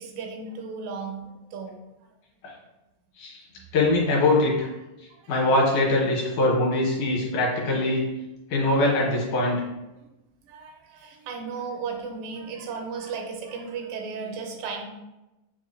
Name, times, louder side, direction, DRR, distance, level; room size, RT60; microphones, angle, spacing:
voice 1, 0.0-1.7 3.6-3.7 5.2-5.4 8.6-8.7 10.5-14.9, right 5 dB, 90° right, 3 dB, 2.4 m, -35 dB
voice 2, 3.7-4.7 5.3-8.0 8.5-9.6, left 2 dB, 70° left, -4 dB, 2.4 m, -22 dB
6.8 x 2.3 x 2.5 m, 0.99 s
omnidirectional pair, 3.9 m